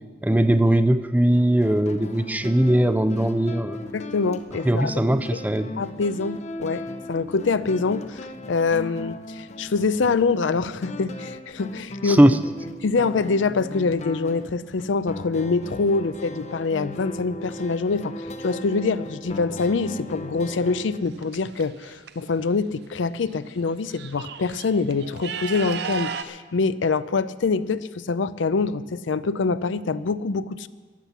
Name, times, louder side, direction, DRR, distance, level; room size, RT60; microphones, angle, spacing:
voice 1, 0.2-3.8 4.6-5.7 12.0-12.4, right 1 dB, 10° right, 11 dB, 0.4 m, -19 dB
sound 1, 1.3-21.0, left 1 dB, 35° left, 0.7 m, -37 dB
voice 2, 3.9-4.9 5.8-6.8 7.1-12.2 12.8-30.7, left 4 dB, 85° left, 15 dB, 0.5 m, -25 dB
sound 2, 21.0-22.1 23.3-23.4 23.7-26.2, right 6 dB, 60° right, 0.6 m, -34 dB
13.5 x 9.9 x 7.2 m, 1.4 s
head